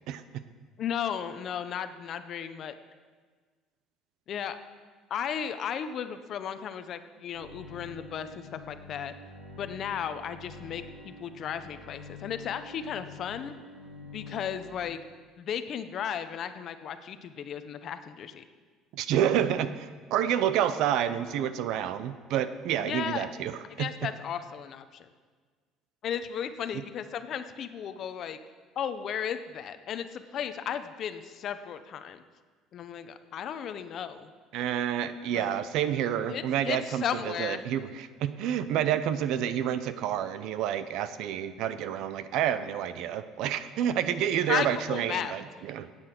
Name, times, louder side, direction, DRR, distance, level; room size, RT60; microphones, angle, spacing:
voice 1, 0.8-2.7 4.3-4.6 5.1-9.1 9.6-13.5 14.1-15.0 15.4-18.4 22.8-23.3 23.8-25.1 26.0-28.4 28.8-32.2 32.7-34.3 35.3-35.6 36.3-37.6 44.5-45.3, left 8 dB, 45° left, 10 dB, 0.7 m, -35 dB
Bowed string instrument, 7.3-14.8, left 3 dB, 85° right, 4.3 m, -47 dB
voice 2, 18.9-23.9 34.5-45.9, right 10 dB, 65° right, 12 dB, 0.7 m, -29 dB
14.5 x 8.9 x 6.0 m, 1.5 s
cardioid pair, 150°, 0 cm